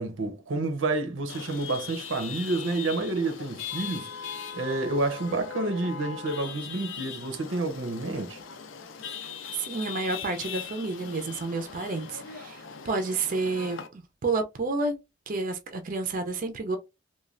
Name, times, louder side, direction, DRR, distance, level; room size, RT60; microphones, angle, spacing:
voice 1, 0.0-8.4, right 2 dB, 90° right, 0.7 m, -29 dB
Chatter / Vehicle horn car horn honking / Traffic noise roadway noise, 1.3-13.9, left 7 dB, 90° left, 0.5 m, -40 dB
voice 2, 9.5-15.0 15.3-16.8, right 3 dB, 45° right, 0.4 m, -30 dB
3.1 x 2.2 x 2.4 m
head